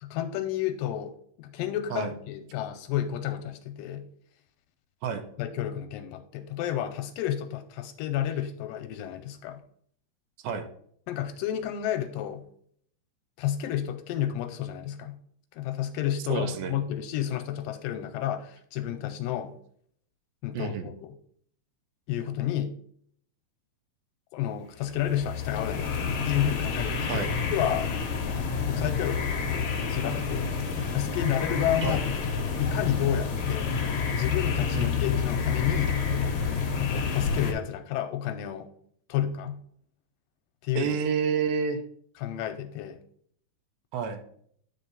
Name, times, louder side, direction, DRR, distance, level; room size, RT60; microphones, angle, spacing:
voice 1, 0.0-4.1 5.4-9.6 11.1-12.5 13.4-15.2 15.5-19.6 20.4-21.1 22.1-22.8 24.3-26.0 26.2-27.9 28.7-30.5 30.9-32.0 32.6-33.8 34.2-36.0 36.8-38.7 39.1-39.6 40.6-41.0 42.2-43.0, left 11 dB, 80° left, 7 dB, 2.2 m, -31 dB
voice 2, 16.3-16.8 20.5-20.9 27.1-27.3 31.8-32.0 34.7-35.0 40.8-41.8 43.9-44.2, right 6 dB, 85° right, 8 dB, 2.6 m, -29 dB
sound 1, 24.8-37.5, left 5 dB, 60° left, 1.3 m, -29 dB
9.3 x 4.5 x 4.0 m, 0.63 s
omnidirectional pair, 4.2 m